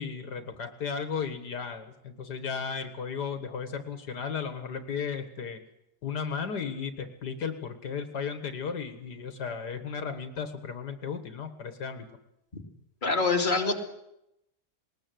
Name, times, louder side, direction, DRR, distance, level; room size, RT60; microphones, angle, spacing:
voice 1, 0.0-5.6 6.0-12.1, left 6 dB, 80° left, 8 dB, 2.1 m, -35 dB
voice 2, 13.0-13.8, left 3 dB, 30° left, 1 dB, 2.4 m, -25 dB
20.0 x 19.5 x 7.8 m, 0.85 s
omnidirectional pair, 1.8 m